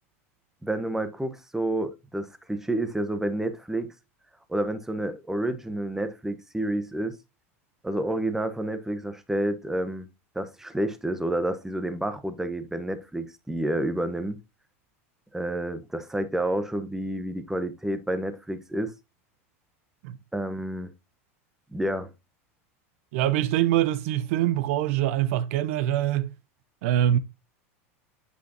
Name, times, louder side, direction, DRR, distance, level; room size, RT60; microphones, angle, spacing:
voice 1, 0.6-3.9 4.5-7.2 7.8-10.1 10.3-14.4 15.3-18.9 20.3-20.9 21.7-22.1, right 1 dB, 5° right, 1.0 m, -29 dB
voice 2, 23.1-26.3 26.8-27.2, right 12 dB, 70° right, 0.7 m, -24 dB
8.3 x 5.0 x 2.8 m
hypercardioid pair, 95°, 8 cm